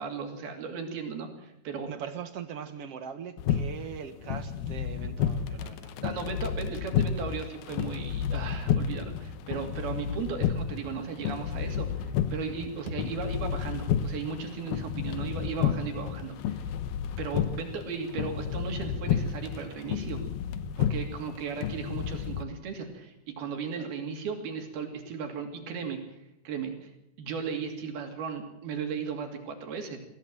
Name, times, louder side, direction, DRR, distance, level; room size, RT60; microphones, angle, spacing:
voice 1, 0.0-1.9 6.0-16.7 17.2-20.2 20.8-26.0 26.4-26.9 27.2-30.0, right 5 dB, 85° right, 4 dB, 4.6 m, -36 dB
voice 2, 1.9-5.9 21.6-21.7 23.8-23.9, right 7 dB, 60° right, 10 dB, 1.6 m, -41 dB
sound 1, 3.4-22.4, left 8 dB, 80° left, 2.8 m, -31 dB
23.0 x 16.5 x 7.6 m, 0.82 s
omnidirectional pair, 4.3 m